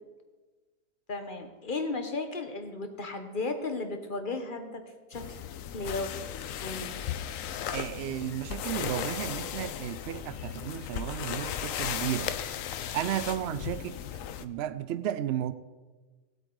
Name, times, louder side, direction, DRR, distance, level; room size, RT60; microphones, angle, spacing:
voice 1, 1.1-4.8 5.1-5.4 5.7-6.1 6.6-7.0, left 3 dB, 35° left, 1.2 m, -34 dB
sound 1, 5.1-14.4, left 9 dB, 65° left, 0.9 m, -36 dB
voice 2, 7.7-12.3 12.9-14.0 14.4-15.5, right 11 dB, 75° right, 0.6 m, -33 dB
18.5 x 8.2 x 3.9 m
omnidirectional pair, 1.6 m